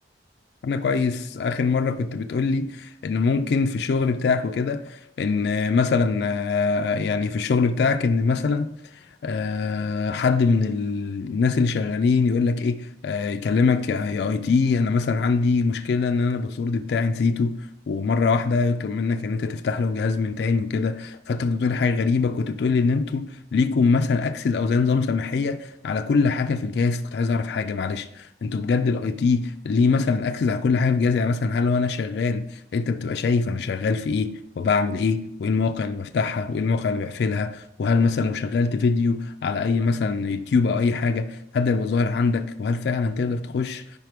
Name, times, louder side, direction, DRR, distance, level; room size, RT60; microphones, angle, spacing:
voice 1, 0.6-8.7 9.2-17.6 17.9-43.8, left 4 dB, 65° left, 0.3 m, -23 dB
5.0 x 4.6 x 5.0 m
head